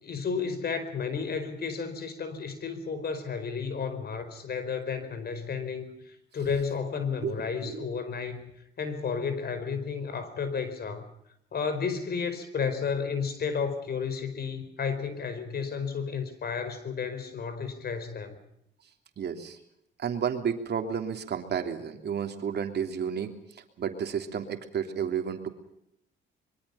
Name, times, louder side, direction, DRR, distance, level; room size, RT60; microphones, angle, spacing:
voice 1, 0.0-8.5 8.8-11.0 11.5-18.4, left 5 dB, 55° left, 11 dB, 4.8 m, -32 dB
voice 2, 7.2-7.9 19.2-19.6 20.0-25.5, right 7 dB, 55° right, 5 dB, 3.2 m, -32 dB
25.5 x 23.0 x 5.7 m, 0.76 s
cardioid pair, 90°, 20 cm